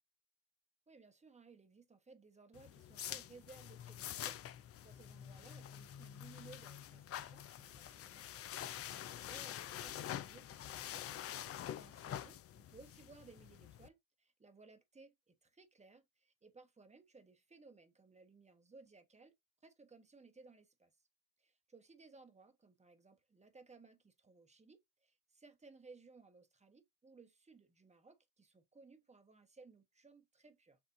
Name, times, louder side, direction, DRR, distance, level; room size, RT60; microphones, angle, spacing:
voice 1, 0.9-19.3 19.6-20.9 21.4-30.8, right 4 dB, 15° right, 1.0 m, -61 dB
sound 1, 2.5-13.9, left 11 dB, 35° left, 0.4 m, -47 dB
6.9 x 2.5 x 2.6 m
hypercardioid pair, 65°, 43 cm